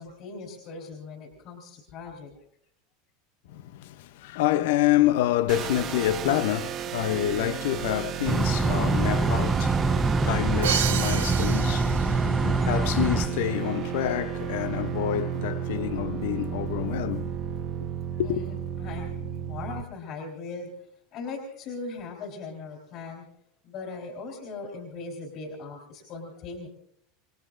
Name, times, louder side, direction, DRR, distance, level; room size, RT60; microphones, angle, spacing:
voice 1, 0.0-2.3 18.2-23.2 23.6-26.7, left 4 dB, 50° left, 3.8 m, -39 dB
voice 2, 3.5-17.4 18.2-18.4, left 13 dB, 70° left, 0.7 m, -27 dB
sound 1, 5.5-19.8, right 10 dB, 45° right, 1.3 m, -33 dB
sound 2, 8.3-13.3, right 3 dB, 10° right, 0.9 m, -24 dB
Crash cymbal, 10.6-12.5, right 11 dB, 80° right, 0.9 m, -30 dB
27.5 x 19.0 x 2.6 m
hypercardioid pair, 95°, 0 cm